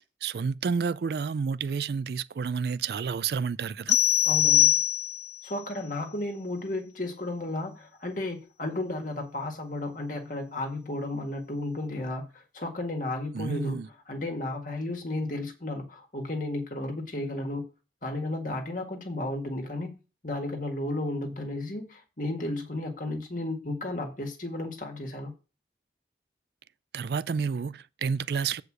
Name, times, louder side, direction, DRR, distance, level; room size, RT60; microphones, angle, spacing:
voice 1, 0.2-4.0 13.3-13.9 26.9-28.6, right 5 dB, 60° right, 0.3 m, -30 dB
sound 1, 3.9-5.4, left 13 dB, 75° left, 0.4 m, -22 dB
voice 2, 4.3-4.8 5.4-12.2 12.5-13.8 14.1-17.6 18.0-19.9 20.2-25.3, left 2 dB, 45° left, 1.8 m, -33 dB
8.2 x 4.8 x 6.2 m
head